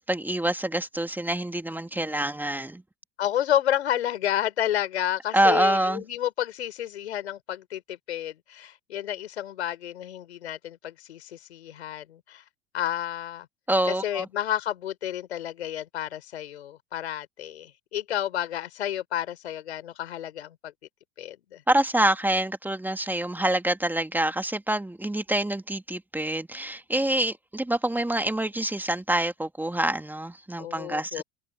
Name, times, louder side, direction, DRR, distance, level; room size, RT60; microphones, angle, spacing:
voice 1, 0.0-2.8 5.3-6.0 13.7-14.2 21.7-31.2, right 1 dB, 5° right, 2.5 m, -26 dB
voice 2, 3.2-12.4 12.7-13.5 13.8-20.7 21.2-21.6 30.6-31.2, left 11 dB, 80° left, 4.3 m, -30 dB
hypercardioid pair, 85°, 32 cm